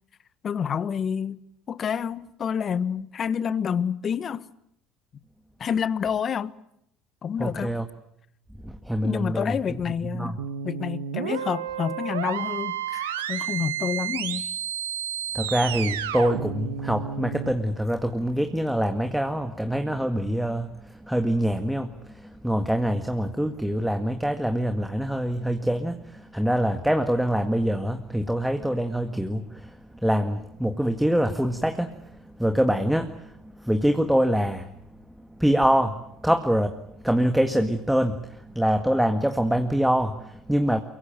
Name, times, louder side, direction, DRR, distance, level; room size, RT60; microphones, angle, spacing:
voice 1, 0.4-1.4 1.7-4.4 5.6-6.5 7.2-7.8 9.0-10.4 10.6-14.4, left 7 dB, 40° left, 1.2 m, -28 dB
voice 2, 7.4-7.8 8.6-9.5 10.1-10.4 15.3-20.7 21.1-21.9 22.4-26.0 26.3-29.7 30.0-31.9 32.4-33.1 33.6-34.6 35.4-36.0 36.2-36.7 37.0-38.1 38.6-40.8, equal, 5° right, 1.9 m, -24 dB
sound 1, 10.4-17.5, right 9 dB, 85° right, 1.4 m, -31 dB
24.0 x 23.0 x 9.1 m
hypercardioid pair, 70°, 0 cm